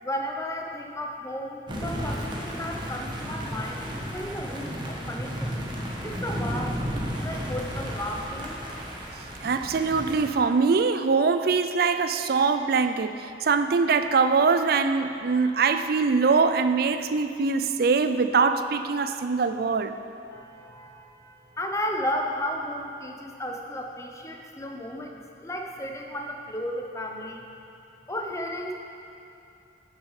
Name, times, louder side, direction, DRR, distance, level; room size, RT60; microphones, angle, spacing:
voice 1, 0.0-5.5 6.0-6.8 7.2-8.6 20.3-27.5 28.1-28.7, left 1 dB, 15° left, 2 dB, 0.7 m, -34 dB
sound 1, 1.7-10.3, equal, 25° right, 1.1 m, -33 dB
voice 2, 9.4-19.9, right 4 dB, 55° right, 9 dB, 0.4 m, -23 dB
11.0 x 6.4 x 4.8 m, 2.8 s
head